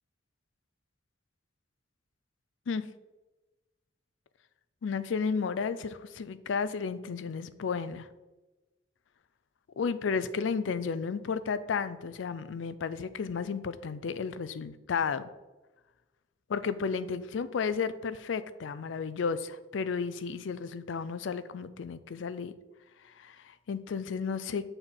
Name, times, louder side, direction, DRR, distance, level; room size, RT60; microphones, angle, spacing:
voice 1, 4.8-8.1 9.8-15.3 16.5-22.5 23.0-24.7, left 5 dB, 80° left, 14 dB, 0.4 m, -33 dB
6.6 x 4.4 x 3.9 m, 1.1 s
head